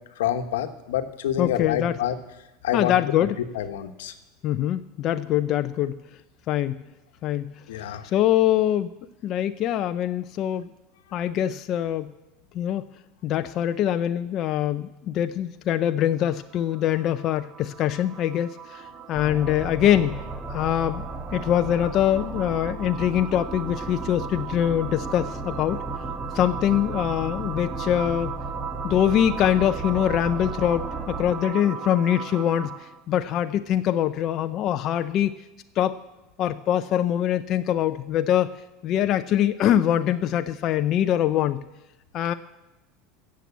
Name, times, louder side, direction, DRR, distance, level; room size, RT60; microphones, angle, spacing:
voice 1, 0.2-2.2 2.6-3.0 3.5-4.1 7.7-8.1, left 10 dB, 90° left, 9 dB, 1.1 m, -27 dB
voice 2, 1.4-2.0 2.7-3.4 4.4-6.0 6.5-6.8 7.2-7.5 8.0-8.9 9.2-10.7 11.1-12.1 12.5-12.8 13.2-20.2 20.5-21.0 21.3-25.8 26.3-28.4 28.8-35.3 35.8-36.0 36.4-38.5 38.8-41.6 42.1-42.3, left 11 dB, 45° left, 9 dB, 0.6 m, -23 dB
sound 1, 16.3-33.0, right 7 dB, 40° right, 1.4 m, -37 dB
sound 2, 19.1-31.3, right 2 dB, 5° right, 1.6 m, -36 dB
15.0 x 7.7 x 8.3 m, 0.99 s
supercardioid pair, 120°, 0 cm